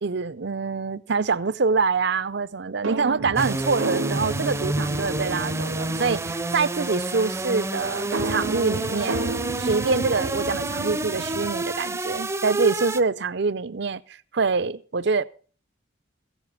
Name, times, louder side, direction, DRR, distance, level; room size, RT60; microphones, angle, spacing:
voice 1, 0.0-9.3 9.6-14.0 14.3-15.2, right 4 dB, 55° right, 0.6 m, -25 dB
sound 1, 2.8-6.6 8.1-11.7, right 2 dB, 75° right, 0.9 m, -32 dB
sound 2, 3.4-13.0, right 2 dB, 15° right, 0.6 m, -29 dB
15.5 x 7.3 x 7.0 m
head